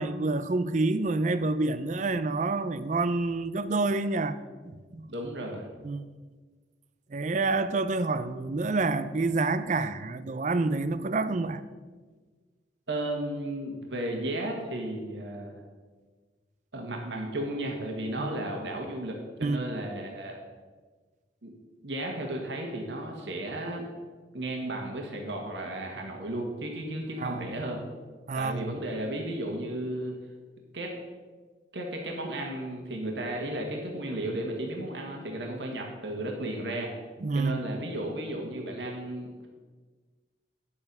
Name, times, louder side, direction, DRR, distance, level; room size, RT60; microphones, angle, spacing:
voice 1, 0.0-4.4 4.6-5.1 5.8-6.1 7.1-11.6 18.2-18.3 19.4-19.7 27.2-27.5 28.3-28.8 37.2-37.6, right 3 dB, 45° right, 0.5 m, -28 dB
voice 2, 5.1-5.7 12.9-15.6 16.7-20.4 21.4-21.5 21.8-23.8 24.3-27.8 28.3-30.1 30.7-30.9 31.7-36.9 37.3-39.5, right 1 dB, 85° right, 1.7 m, -34 dB
9.9 x 7.2 x 5.5 m
head